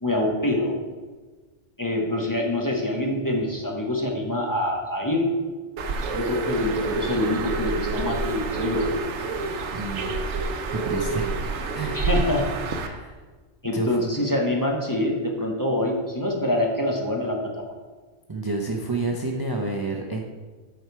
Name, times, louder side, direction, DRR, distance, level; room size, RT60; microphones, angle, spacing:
voice 1, 0.0-0.8 1.8-5.3 6.1-8.9 11.9-13.0 13.6-17.6, left 1 dB, 20° left, -1 dB, 0.9 m, -25 dB
Bird, 5.8-12.9, right 3 dB, 80° right, 1.0 m, -28 dB
voice 2, 9.7-10.1 10.8-11.3 11.7-12.0 12.9-13.1 13.7-14.0 18.3-20.2, right 3 dB, 25° right, 1 dB, 0.5 m, -29 dB
7.7 x 5.0 x 4.6 m, 1.3 s
omnidirectional pair, 1.2 m